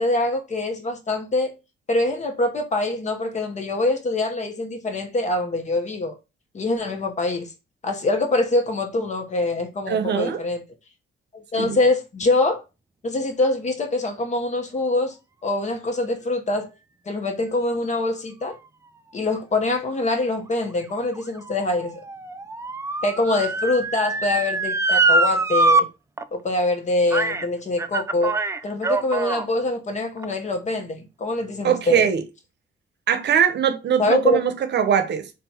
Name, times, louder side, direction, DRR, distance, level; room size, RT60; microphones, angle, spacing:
voice 1, 0.0-1.5 1.9-6.1 6.5-7.5 7.8-10.6 11.5-12.6 13.0-15.2 15.4-16.7 17.1-18.6 19.1-22.0 23.0-25.9 26.3-28.3 28.6-32.1 34.0-34.4, left 2 dB, 35° left, 1.0 m, -24 dB
voice 2, 9.9-10.4 11.5-11.8 31.6-32.2 33.1-35.3, right 8 dB, 60° right, 0.8 m, -21 dB
Motor vehicle (road) / Siren, 20.6-25.8 26.2-26.3 27.1-27.5 27.8-29.5 30.2-30.3, right 3 dB, 15° right, 0.3 m, -23 dB
3.7 x 2.3 x 4.3 m
cardioid pair, 90°, 20 cm